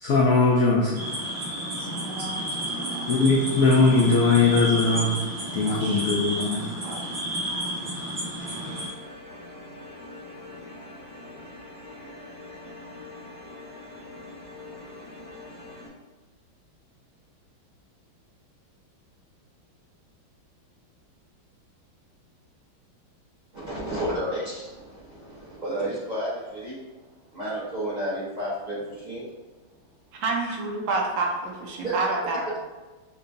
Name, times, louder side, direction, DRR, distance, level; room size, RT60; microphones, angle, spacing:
voice 1, 0.0-1.0 3.1-5.2 5.5-6.6, left 3 dB, 85° left, -3 dB, 0.8 m, -20 dB
sound 1, 1.0-8.9, equal, 90° right, 2.3 m, -31 dB
voice 2, 1.8-3.2 3.6-3.7 5.5-6.0 6.8-7.0 30.2-32.4, right 3 dB, 75° right, -1 dB, 1.3 m, -30 dB
sound 2, 8.4-15.9, left 2 dB, 20° right, 1.1 m, -43 dB
voice 3, 23.5-26.8 27.3-29.3 30.5-30.6 31.8-32.6, right 1 dB, 40° right, -9 dB, 0.6 m, -31 dB
5.6 x 2.2 x 2.5 m, 1.2 s
omnidirectional pair, 2.3 m